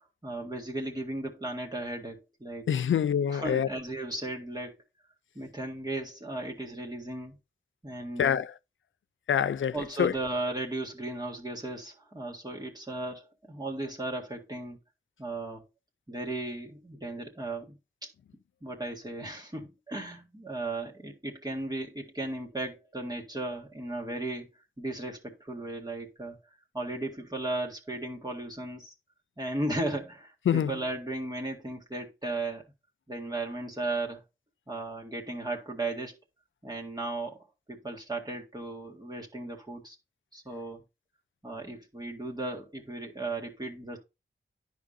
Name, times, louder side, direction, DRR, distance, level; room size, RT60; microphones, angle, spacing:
voice 1, 0.2-2.7 3.3-4.8 5.4-7.4 7.8-8.4 9.7-14.8 15.2-15.6 16.1-17.7 18.0-18.1 18.6-24.5 24.8-26.4 26.7-28.9 29.4-32.6 33.1-34.2 34.7-36.2 36.6-37.4 37.7-40.0 40.3-40.8 41.4-44.0, right 2 dB, 20° right, 1.9 m, -36 dB
voice 2, 2.7-3.7 8.2-8.5 9.3-10.1 30.5-30.7, left 8 dB, 70° left, 0.4 m, -26 dB
10.0 x 5.1 x 2.7 m
cardioid pair, 50°, 21 cm